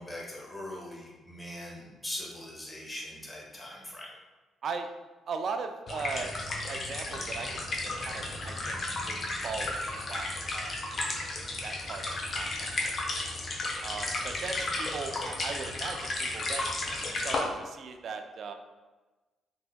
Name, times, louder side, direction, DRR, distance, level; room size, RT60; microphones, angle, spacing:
voice 1, 0.0-4.1 14.4-14.5, left 1 dB, 15° left, -4 dB, 1.1 m, -41 dB
voice 2, 5.3-6.3 6.7-8.8 9.0-9.2 9.4-10.7 11.6-12.8 13.8-16.7 17.2-18.5, right 5 dB, 55° right, 6 dB, 0.3 m, -38 dB
sound 1, 5.9-17.4, left 2 dB, 45° left, 0.6 m, -34 dB
3.9 x 2.8 x 2.2 m, 1.2 s
hypercardioid pair, 45°, 0 cm